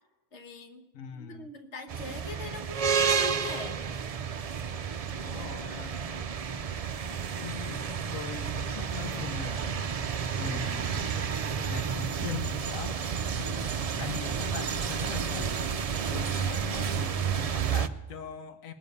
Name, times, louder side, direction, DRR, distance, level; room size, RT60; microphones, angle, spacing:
voice 1, 0.3-3.8, left 2 dB, 60° left, 6 dB, 1.6 m, -41 dB
voice 2, 0.9-1.5 5.2-6.0 7.3-9.9 10.4-11.4 11.7-13.0 13.4-15.7 16.1-18.7, left 6 dB, 90° left, 9 dB, 1.2 m, -41 dB
sound 1, 1.9-17.9, right 7 dB, 60° right, 0.4 m, -31 dB
20.0 x 7.0 x 8.1 m, 1.1 s
omnidirectional pair, 1.4 m